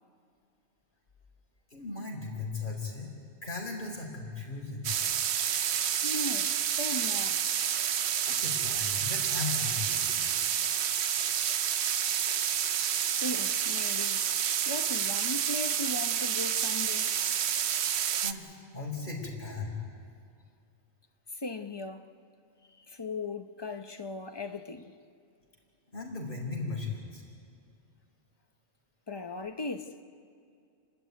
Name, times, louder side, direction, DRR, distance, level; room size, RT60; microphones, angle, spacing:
voice 1, 1.7-3.1 3.4-4.9 8.3-10.3 18.2-19.8 25.9-27.2, left 4 dB, 45° left, 4.7 m, -37 dB
sound 1, 4.8-18.3, right 9 dB, 75° right, 1.0 m, -29 dB
voice 2, 6.0-7.5 13.1-14.3 14.7-17.2 21.3-22.1 22.7-25.0 29.1-30.0, left 2 dB, 25° left, 0.8 m, -38 dB
29.0 x 12.5 x 9.4 m
omnidirectional pair, 1.1 m